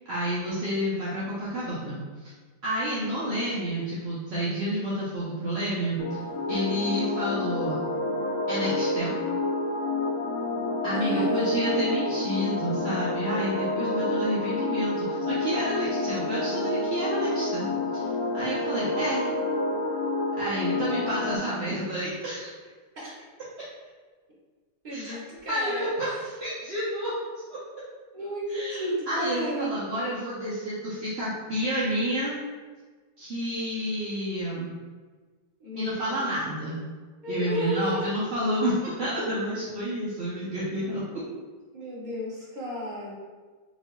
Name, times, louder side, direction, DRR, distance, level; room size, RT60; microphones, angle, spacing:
voice 1, 0.1-2.3 2.6-6.2 6.5-7.8 8.5-9.2 10.8-18.1 18.3-19.3 20.4-22.5 24.9-25.1 25.5-26.1 26.4-27.1 27.5-27.6 28.5-32.3 33.2-34.7 35.8-36.8 37.3-41.0, equal, 60° right, -9 dB, 0.7 m, -30 dB
sound 1, 6.0-21.4, left 2 dB, 70° left, 0.9 m, -29 dB
voice 2, 6.5-6.9 10.9-11.5 22.9-23.1 24.8-25.9 28.1-29.8 35.6-36.4 37.2-38.1 41.7-43.1, equal, 35° right, -7 dB, 0.9 m, -33 dB
4.5 x 2.7 x 2.2 m, 1.4 s
omnidirectional pair, 1.8 m